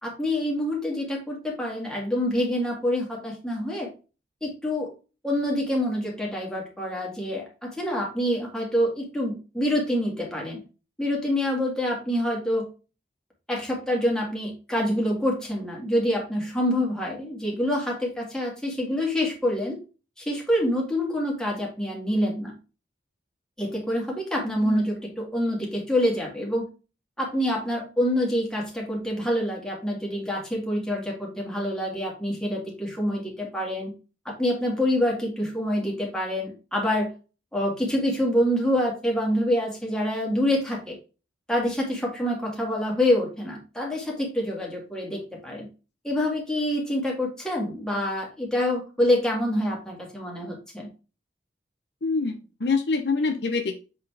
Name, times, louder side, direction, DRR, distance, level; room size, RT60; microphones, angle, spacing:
voice 1, 0.0-3.9 4.4-4.9 5.2-10.6 11.0-12.7 13.5-19.8 20.2-22.5 23.6-26.6 27.2-33.9 34.3-37.1 37.5-40.9 41.5-45.7 46.0-50.9, left 1 dB, 5° left, -3 dB, 2.1 m, -26 dB
voice 2, 52.0-53.8, left 4 dB, 65° left, 5 dB, 0.8 m, -26 dB
7.4 x 4.1 x 3.4 m, 0.32 s
head